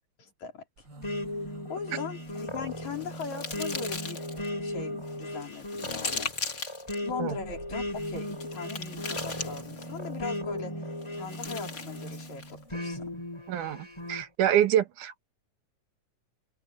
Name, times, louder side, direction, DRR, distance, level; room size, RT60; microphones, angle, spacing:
voice 1, 0.2-0.6 1.5-4.2 4.6-6.3 7.0-13.1, left 6 dB, 70° left, 5.0 m, -40 dB
sound 1, 0.8-5.6 7.3-12.8 13.7-13.8 14.0-14.1, right 1 dB, 35° right, 4.2 m, -43 dB
sound 2, 1.0-12.1 12.7-14.2, left 1 dB, 10° left, 6.8 m, -37 dB
sound 3, 2.2-4.5 5.0-7.0 7.9-10.0 11.0-12.6, left 4 dB, 30° left, 2.2 m, -39 dB
voice 2, 13.5-15.2, right 10 dB, 90° right, 2.9 m, -26 dB
open air
omnidirectional pair, 3.5 m